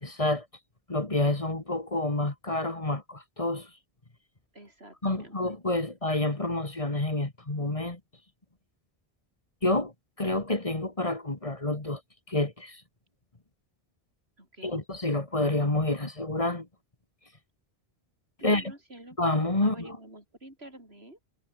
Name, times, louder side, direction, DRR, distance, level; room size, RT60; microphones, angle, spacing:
voice 1, 0.0-0.5 0.9-3.7 5.0-8.0 9.6-12.0 12.3-12.8 14.6-16.7 18.4-18.6 19.2-20.0, left 2 dB, 35° left, 2.2 m, -28 dB
voice 2, 4.5-5.5 14.4-14.8 18.4-19.2 19.6-21.2, right 1 dB, 85° right, 8.2 m, -48 dB
omnidirectional pair, 1.0 m